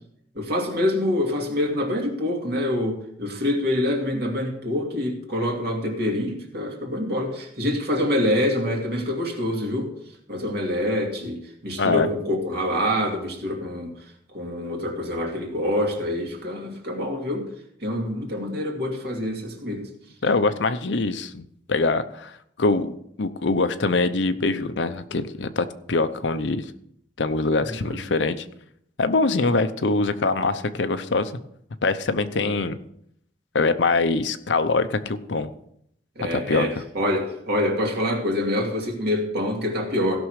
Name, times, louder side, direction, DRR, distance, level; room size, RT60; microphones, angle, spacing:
voice 1, 0.3-9.9 10.3-13.9 14.3-17.5 17.8-19.9 27.6-28.0 32.3-32.6 36.2-40.2, left 1 dB, 60° right, 1 dB, 2.5 m, -26 dB
voice 2, 20.2-22.3 22.6-22.9 23.2-26.7 27.2-28.4 29.0-31.3 31.8-32.8 33.5-35.5 36.3-36.7, left 3 dB, 75° left, 10 dB, 0.7 m, -23 dB
16.0 x 6.2 x 4.8 m, 0.72 s
head